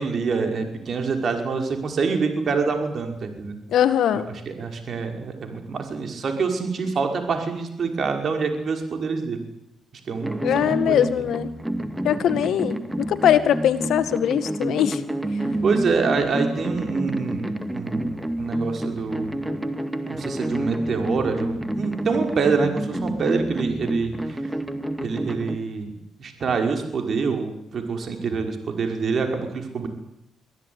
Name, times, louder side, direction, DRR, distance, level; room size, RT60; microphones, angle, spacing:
voice 1, 0.0-3.6 4.2-9.4 10.1-11.0 12.3-12.4 15.6-19.4 20.1-24.4 25.0-25.9 26.2-29.9, right 4 dB, 50° right, 5 dB, 5.6 m, -26 dB
voice 2, 3.7-4.3 10.4-11.5 12.0-15.0, left 10 dB, 75° left, 12 dB, 1.9 m, -21 dB
sound 1, 10.2-25.6, right 1 dB, 5° right, 2.1 m, -29 dB
25.0 x 16.0 x 9.9 m, 0.87 s
cardioid pair, 90°, 0 cm